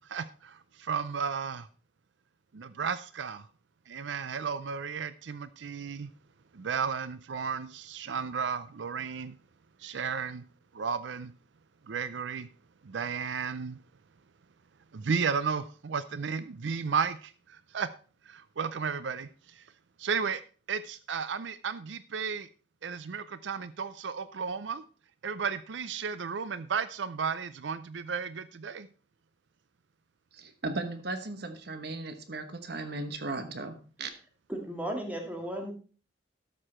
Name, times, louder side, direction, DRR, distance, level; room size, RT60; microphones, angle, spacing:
voice 1, 0.1-1.7 2.5-3.5 3.9-6.1 6.5-9.3 9.8-10.4 10.7-11.3 11.9-12.5 12.8-13.8 14.9-17.9 18.3-19.3 20.0-20.4 20.7-22.5 22.8-24.8 25.2-28.9, right 6 dB, 80° right, 14 dB, 0.5 m, -33 dB
voice 2, 30.3-34.1, right 2 dB, 60° right, 8 dB, 1.2 m, -36 dB
voice 3, 34.5-35.7, right 1 dB, 10° right, 2 dB, 2.1 m, -35 dB
12.5 x 6.5 x 4.3 m, 0.38 s
head